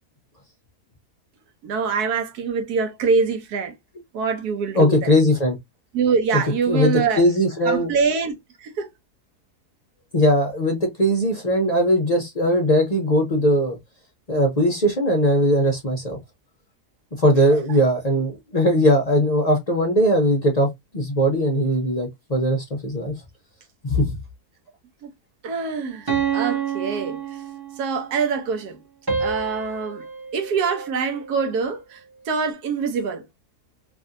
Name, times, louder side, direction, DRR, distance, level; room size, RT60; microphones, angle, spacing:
voice 1, 1.6-3.7 4.1-5.1 5.9-7.2 7.6-8.9 17.5-17.6 25.0-25.1 25.4-27.4 27.8-28.8 29.2-30.0 30.3-33.2, right 5 dB, 85° right, 1.3 m, -24 dB
voice 2, 4.7-5.6 6.7-7.9 10.1-13.8 14.3-16.2 17.2-23.1 23.8-24.2, equal, 45° left, 0.5 m, -20 dB
sound 1, 26.1-28.0 29.1-31.5, right 6 dB, 20° right, 0.6 m, -28 dB
3.1 x 2.7 x 2.5 m
omnidirectional pair, 1.6 m